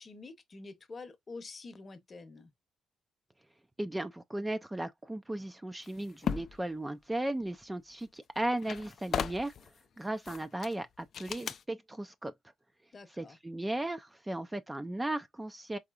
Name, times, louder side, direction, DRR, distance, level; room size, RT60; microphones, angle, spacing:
voice 1, 0.0-2.5 12.9-13.4, left 3 dB, 35° left, 0.8 m, -47 dB
voice 2, 3.8-9.7 10.0-12.3 13.2-15.8, right 1 dB, 15° right, 0.4 m, -36 dB
sound 1, 5.8-6.6 8.0-8.1 8.4-9.7 10.3-10.7 11.1-11.6, left 7 dB, 60° left, 0.3 m, -36 dB
4.8 x 2.7 x 2.4 m
cardioid pair, 90°, 0 cm